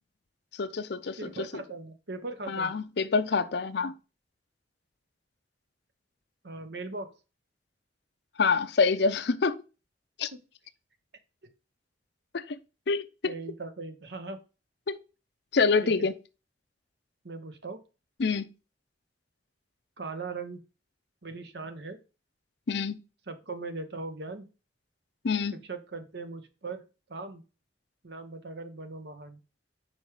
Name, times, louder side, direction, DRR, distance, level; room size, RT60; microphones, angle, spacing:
voice 1, 0.6-1.2 2.5-3.9 8.4-9.6 10.2-10.3 12.3-12.6 12.9-13.3 14.9-15.0 15.5-16.1 18.2-18.5 22.7-23.0 25.2-25.5, left 4 dB, 65° left, 0.6 m, -26 dB
voice 2, 1.2-2.7 6.4-7.1 10.3-10.4 13.2-14.4 15.8-16.1 17.2-17.8 20.0-20.6 21.2-22.0 23.3-24.5 25.5-26.8 27.1-27.4 28.0-29.4, right 3 dB, 65° right, 1.0 m, -39 dB
5.3 x 4.8 x 4.8 m
head